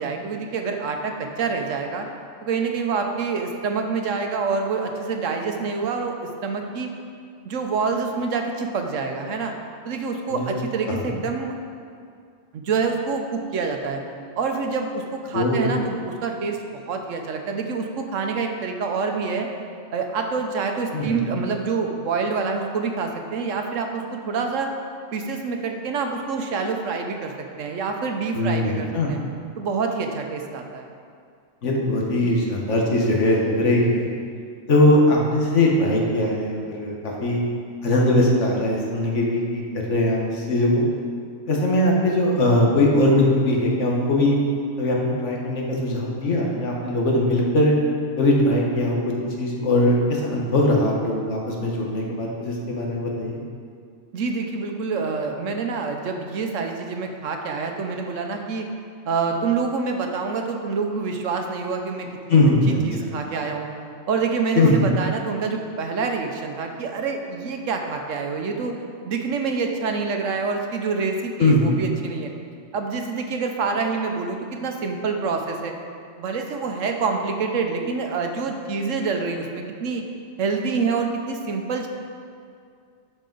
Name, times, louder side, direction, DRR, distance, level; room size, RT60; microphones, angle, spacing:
voice 1, 0.0-2.1 2.4-6.1 6.4-6.9 7.4-9.5 9.8-11.5 12.5-14.0 14.3-16.6 16.9-19.5 19.9-24.7 25.1-27.3 27.6-29.2 29.6-30.9 54.1-58.7 59.1-62.4 62.7-63.7 64.1-68.7 69.0-72.3 72.7-75.7 76.2-80.0 80.4-81.9, right 4 dB, 75° right, 4 dB, 1.1 m, -26 dB
voice 2, 15.3-15.7 20.9-21.2 28.3-29.1 31.6-34.1 34.7-37.4 37.8-39.6 39.9-40.8 41.5-44.4 44.8-47.7 48.2-53.4 62.3-62.8 64.6-64.8 71.4-71.7, left 1 dB, 65° left, -2 dB, 1.5 m, -20 dB
12.0 x 5.0 x 3.9 m, 2.3 s
omnidirectional pair, 1.4 m